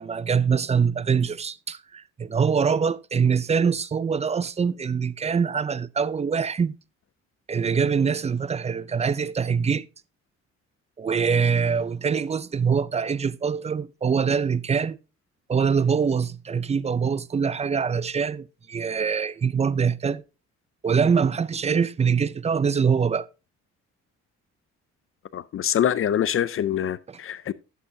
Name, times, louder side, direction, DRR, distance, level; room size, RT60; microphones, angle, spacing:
voice 1, 0.0-6.8 7.5-9.9 11.0-15.0 15.5-20.2 20.8-23.3 27.1-27.2, right 6 dB, 20° right, 0.4 m, -24 dB
voice 2, 25.3-27.5, left 10 dB, 45° left, 0.5 m, -25 dB
11.0 x 8.1 x 2.7 m
cardioid pair, 90°, 30 cm